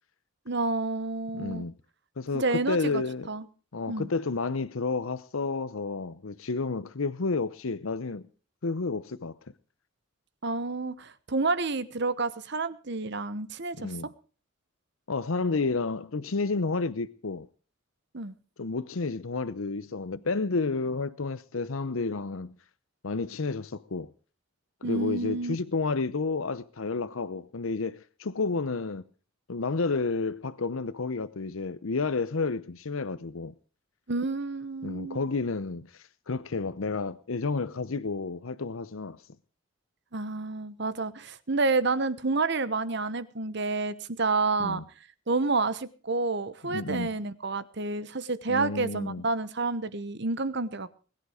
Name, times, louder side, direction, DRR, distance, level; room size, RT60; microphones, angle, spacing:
voice 1, 0.5-1.7 2.3-3.0 3.3-3.4 3.9-4.1 10.4-13.9 18.1-18.3 24.8-25.6 34.1-35.2 40.1-44.8 45.3-50.9, right 3 dB, 55° right, 1.1 m, -29 dB
voice 2, 1.3-1.7 2.2-3.3 3.7-8.3 8.6-9.4 13.8-14.1 15.1-17.5 18.6-22.6 23.0-24.1 24.8-29.0 29.5-33.5 34.8-39.2 44.6-44.8 46.7-47.1 48.5-49.2, left 3 dB, 80° left, 0.8 m, -31 dB
21.5 x 11.0 x 5.0 m
head